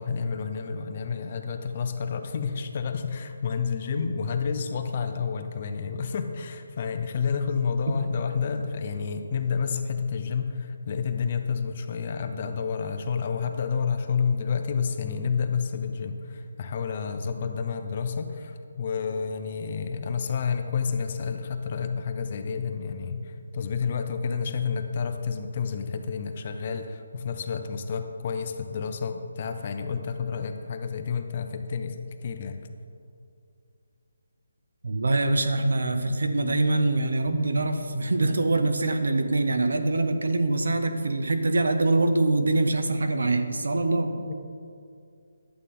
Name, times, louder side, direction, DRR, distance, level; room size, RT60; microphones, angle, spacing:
voice 1, 0.0-32.6 44.2-44.3, left 6 dB, 30° left, 7 dB, 0.6 m, -30 dB
voice 2, 34.8-44.1, right 2 dB, 75° right, 7 dB, 0.9 m, -24 dB
11.0 x 8.2 x 3.8 m, 2.4 s
hypercardioid pair, 170°, 0 cm